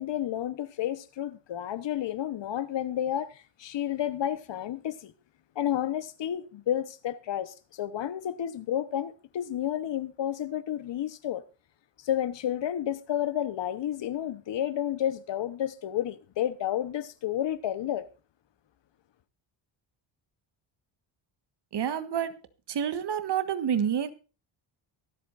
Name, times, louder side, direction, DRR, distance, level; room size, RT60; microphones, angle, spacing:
voice 1, 0.0-5.1 5.5-11.4 12.0-18.1, left 11 dB, 65° left, 1.1 m, -31 dB
voice 2, 21.7-22.4 22.7-24.1, right 8 dB, 55° right, 1.5 m, -28 dB
23.5 x 8.2 x 2.6 m
cardioid pair, 120°, 47 cm